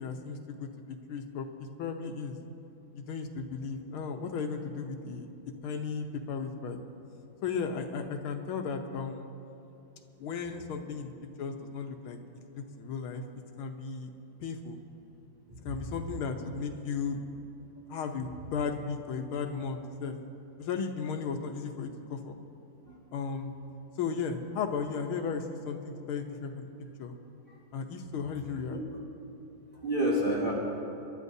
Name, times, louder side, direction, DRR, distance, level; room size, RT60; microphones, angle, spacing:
voice 1, 0.0-1.5 1.8-2.4 2.9-5.3 5.6-6.8 7.4-9.2 10.2-11.1 11.4-12.2 12.5-13.2 13.6-14.1 14.4-14.8 15.6-17.2 17.9-20.2 20.6-22.4 23.1-23.6 24.0-25.8 26.1-26.7 27.0-27.2 27.7-28.8, left 5 dB, 75° left, 5 dB, 1.7 m, -35 dB
voice 2, 15.5-15.8 22.9-23.0 28.7-28.8 29.8-30.5, right 1 dB, 25° right, -5 dB, 2.2 m, -29 dB
28.0 x 12.0 x 2.7 m, 2.8 s
omnidirectional pair, 2.4 m